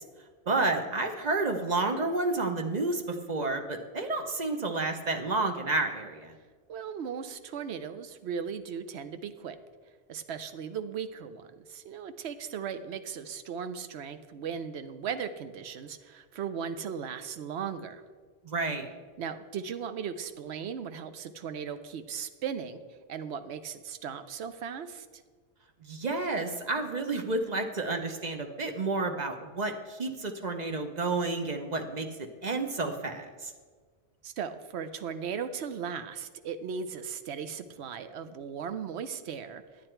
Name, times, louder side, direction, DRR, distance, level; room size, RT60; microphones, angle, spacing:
voice 1, 0.5-6.3 18.4-18.9 25.8-32.1 32.4-33.5, right 3 dB, 45° right, 5 dB, 0.8 m, -30 dB
voice 2, 6.7-9.6 10.1-18.0 19.2-22.8 23.1-25.1 34.2-39.6, right 7 dB, 75° right, 11 dB, 0.9 m, -37 dB
9.8 x 9.3 x 4.4 m, 1.5 s
omnidirectional pair, 1.1 m